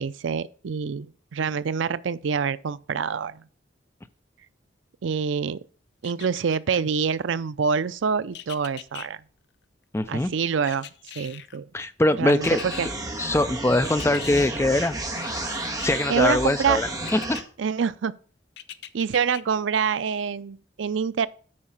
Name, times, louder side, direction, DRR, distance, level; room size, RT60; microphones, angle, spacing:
voice 1, 0.0-3.4 5.0-5.6 6.0-9.2 10.1-11.7 12.2-12.5 12.8-12.9 16.1-16.8 17.6-18.1 18.9-21.3, right 6 dB, 80° right, 0.5 m, -26 dB
sound 1, 6.0-6.8 8.3-9.1 10.6-11.6 12.3-12.8 13.9-14.5 15.2-16.1 17.0-17.4 18.6-19.4 19.9-20.0, left 10 dB, 60° left, 0.5 m, -40 dB
voice 2, 9.9-10.3 11.7-12.6 13.2-14.9 15.8-17.4, left 2 dB, 15° left, 0.4 m, -22 dB
sound 2, 12.4-17.4, right 2 dB, 20° right, 1.5 m, -32 dB
8.6 x 5.3 x 5.7 m
head